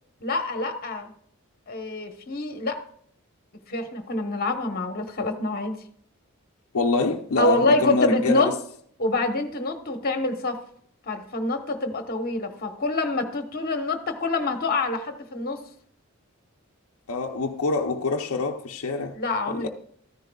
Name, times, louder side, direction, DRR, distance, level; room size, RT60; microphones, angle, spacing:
voice 1, 0.2-1.1 1.7-2.8 3.7-5.8 7.4-8.6 9.0-10.6 11.1-15.6 19.1-19.7, left 2 dB, 45° left, 1.1 m, -26 dB
voice 2, 6.7-8.5 17.1-19.2 19.5-19.7, left 3 dB, 65° left, 0.7 m, -25 dB
14.0 x 10.0 x 2.3 m
head